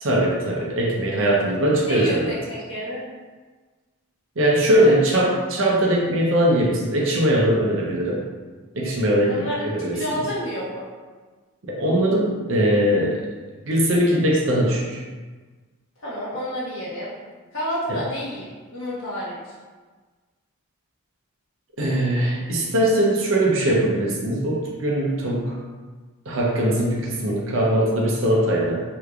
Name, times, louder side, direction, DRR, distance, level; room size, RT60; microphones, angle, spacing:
voice 1, 0.0-2.3 4.4-8.2 8.7-10.0 11.6-13.2 13.6-15.0 17.9-18.0 21.8-25.6 26.3-28.8, right 1 dB, 65° right, -2 dB, 0.6 m, -21 dB
voice 2, 1.9-3.1 4.8-4.9 9.2-10.9 16.0-17.1 17.5-18.5 18.7-19.5 25.0-25.1, equal, 60° left, -8 dB, 1.2 m, -29 dB
3.3 x 3.1 x 2.4 m, 1.4 s
head